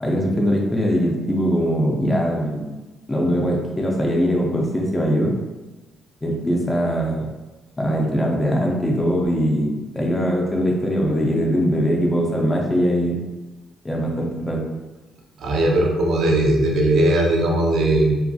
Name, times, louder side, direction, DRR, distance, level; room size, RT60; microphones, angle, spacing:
voice 1, 0.0-2.7 3.1-5.3 6.2-7.3 7.8-13.2 13.8-14.6, equal, 20° left, -1 dB, 0.4 m, -21 dB
voice 2, 15.4-18.2, right 1 dB, 70° right, 0 dB, 0.5 m, -18 dB
2.6 x 2.3 x 2.2 m, 1.1 s
cardioid pair, 90°, 0 cm